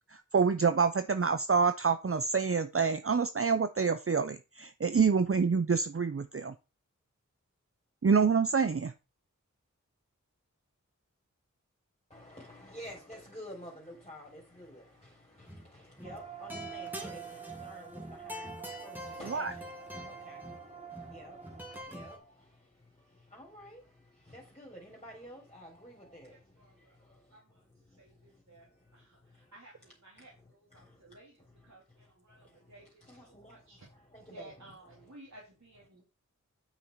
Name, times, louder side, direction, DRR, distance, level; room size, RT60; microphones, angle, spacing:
voice 1, 0.1-6.5 8.0-8.9 19.3-19.5, right 5 dB, 45° right, 0.6 m, -27 dB
voice 2, 12.1-35.2, equal, 20° left, 3.8 m, -52 dB
sound 1, 15.4-15.7 16.0-22.2, left 1 dB, 5° right, 3.2 m, -46 dB
sound 2, 16.0-21.8, right 9 dB, 20° right, 2.1 m, -47 dB
voice 3, 26.3-27.6 28.0-33.9 34.3-36.0, right 2 dB, 60° right, 3.0 m, -56 dB
8.9 x 6.0 x 4.7 m
wide cardioid pair, 40°, 31 cm